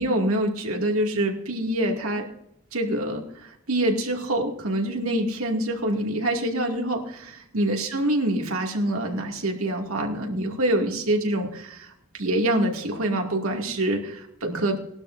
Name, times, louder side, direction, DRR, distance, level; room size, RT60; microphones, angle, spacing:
voice 1, 0.0-2.3 2.7-14.8, right 1 dB, 85° right, 1 dB, 2.4 m, -26 dB
19.5 x 12.0 x 2.7 m, 0.74 s
head